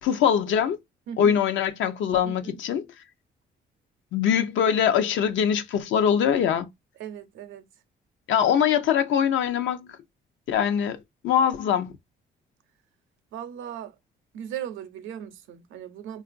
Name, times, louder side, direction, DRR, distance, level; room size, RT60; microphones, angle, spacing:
voice 1, 0.0-0.8 1.2-2.9 4.1-6.7 8.3-10.0 10.5-11.0 11.2-11.9, left 8 dB, 75° left, 0.6 m, -23 dB
voice 2, 1.1-1.4 2.2-2.6 7.0-7.6 13.3-13.9 14.3-16.2, right 9 dB, 85° right, 0.6 m, -37 dB
3.7 x 2.4 x 2.4 m
cardioid pair, 90°, 20 cm